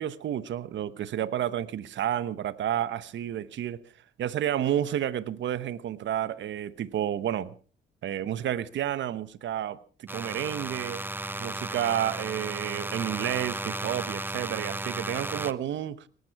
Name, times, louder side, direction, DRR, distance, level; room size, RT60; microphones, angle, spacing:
voice 1, 0.0-3.8 4.2-7.6 8.0-11.0 11.4-16.0, right 11 dB, 70° right, 1.1 m, -30 dB
sound 1, 10.1-15.5, right 2 dB, 10° right, 0.8 m, -34 dB
19.0 x 15.0 x 4.7 m
cardioid pair, 90°, 20 cm